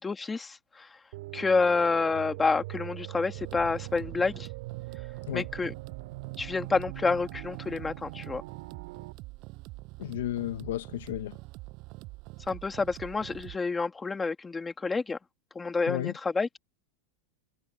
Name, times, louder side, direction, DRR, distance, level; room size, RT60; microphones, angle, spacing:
voice 1, 0.0-0.9 1.3-4.5 5.3-5.7 6.4-8.4 12.5-15.2 15.6-16.5, left 4 dB, 10° left, 2.0 m, -28 dB
sound 1, 1.1-9.1, right 20 dB, 60° right, 5.6 m, -42 dB
sound 2, 3.3-13.6, right 23 dB, 35° right, 7.7 m, -45 dB
voice 2, 10.0-11.4 15.9-16.1, left 13 dB, 80° left, 1.1 m, -33 dB
supercardioid pair, 170°, 0 cm